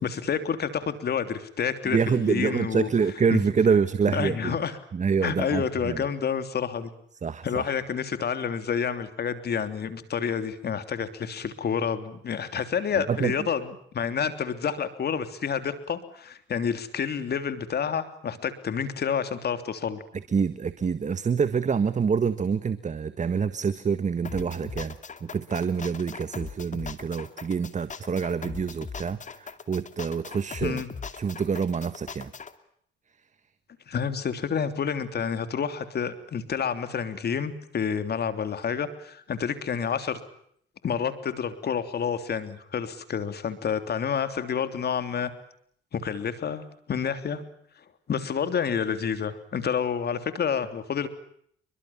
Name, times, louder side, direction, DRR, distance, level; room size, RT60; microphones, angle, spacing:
voice 1, 0.0-2.9 3.3-3.4 4.1-4.7 5.2-6.9 7.4-13.6 13.9-20.0 30.6-30.9 33.9-40.2 40.8-45.3 45.9-47.4 48.1-51.1, left 7 dB, 55° left, 10 dB, 3.2 m, -29 dB
voice 2, 1.8-4.6 4.9-6.0 7.2-7.7 12.9-13.3 20.3-24.9 25.2-30.8 31.1-32.3, right 6 dB, 35° right, 12 dB, 1.6 m, -26 dB
sound 1, 24.2-32.5, left 5 dB, 40° left, 2.5 m, -40 dB
28.5 x 23.5 x 7.3 m, 0.67 s
cardioid pair, 90°, 20 cm